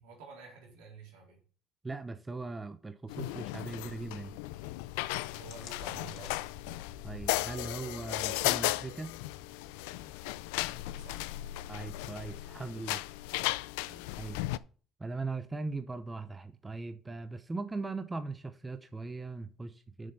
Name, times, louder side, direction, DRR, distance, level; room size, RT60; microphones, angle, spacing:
voice 1, 0.0-1.4 5.3-6.4 10.0-10.1 10.5-11.6 13.8-14.1, right 4 dB, 85° right, 3.8 m, -51 dB
voice 2, 1.8-4.4 7.0-9.1 11.7-13.0 14.2-14.4 15.0-20.1, right 3 dB, 20° right, 0.8 m, -39 dB
sound 1, 3.1-14.6, left 18 dB, 90° left, 0.3 m, -36 dB
sound 2, 5.5-12.7, left 6 dB, 70° left, 1.6 m, -52 dB
7.3 x 6.6 x 5.5 m
supercardioid pair, 85°, 0 cm